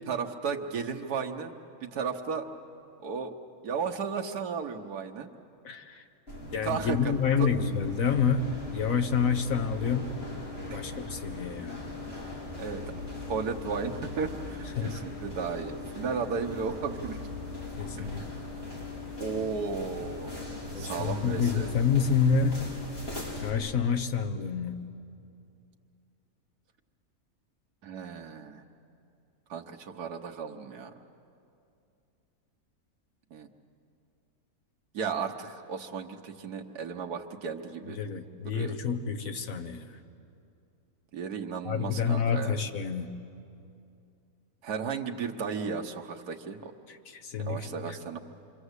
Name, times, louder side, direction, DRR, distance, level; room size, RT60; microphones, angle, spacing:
voice 1, 0.1-1.6 1.8-2.5 3.0-3.3 3.6-5.3 6.6-7.1 7.4-7.5 10.7-10.8 12.6-12.8 13.3-17.2 18.0-18.2 19.2-20.3 20.8-21.7 27.8-28.6 29.5-30.9 33.3-33.5 34.9-38.0 38.5-38.7 41.1-42.6 44.6-46.7 47.4-48.2, right 5 dB, 85° right, 3 dB, 1.6 m, -34 dB
voice 2, 5.6-6.0 6.5-8.5 8.7-10.1 10.7-11.8 14.8-15.0 17.8-18.4 20.7-22.6 23.4-24.8 37.8-39.9 41.6-43.2 46.9-48.0, left 6 dB, 65° left, 5 dB, 1.6 m, -28 dB
sound 1, 6.3-23.5, left 2 dB, 40° left, 5.3 m, -39 dB
27.0 x 24.5 x 8.2 m, 2.6 s
omnidirectional pair, 1.6 m